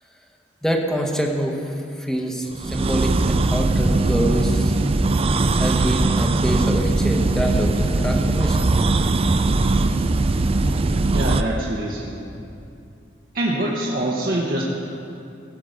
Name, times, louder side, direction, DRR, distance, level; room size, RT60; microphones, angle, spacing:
voice 1, 0.6-4.7 5.6-8.7, equal, 5° left, 1 dB, 1.0 m, -26 dB
sound 1, 2.5-11.4, right 2 dB, 30° right, 0.4 m, -20 dB
voice 2, 11.1-12.1 13.3-14.6, right 1 dB, 55° right, -4 dB, 1.1 m, -24 dB
16.5 x 5.8 x 6.5 m, 2.6 s
head